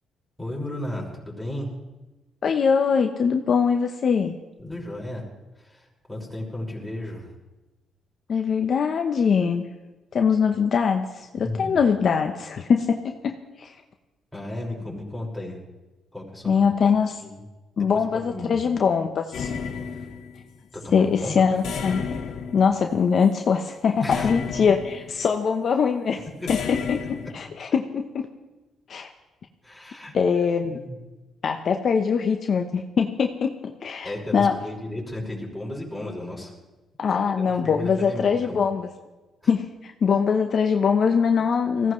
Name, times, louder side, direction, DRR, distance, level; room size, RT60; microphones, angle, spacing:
voice 1, 0.4-1.7 4.6-5.2 5.6-7.3 11.4-11.7 14.3-15.6 16.1-16.7 17.2-17.4 17.8-18.6 19.8-20.1 20.7-21.5 24.0-24.3 26.4-26.5 29.6-30.1 30.6-31.0 34.0-36.5 37.1-38.6 39.4-39.5, left 1 dB, 5° left, -4 dB, 5.4 m, -34 dB
voice 2, 2.4-4.3 8.3-9.6 10.1-13.7 16.5-17.2 17.8-19.5 20.9-22.1 22.5-27.0 27.3-28.3 28.9-29.1 30.1-30.8 31.4-34.5 37.0-38.9 39.5-41.9, left 6 dB, 55° left, 5 dB, 0.9 m, -22 dB
sound 1, 19.3-20.6 21.6-23.3 24.1-25.3 26.5-27.3, left 6 dB, 75° left, 1.8 m, -32 dB
20.0 x 16.0 x 3.2 m, 1.1 s
cardioid pair, 90°, 0 cm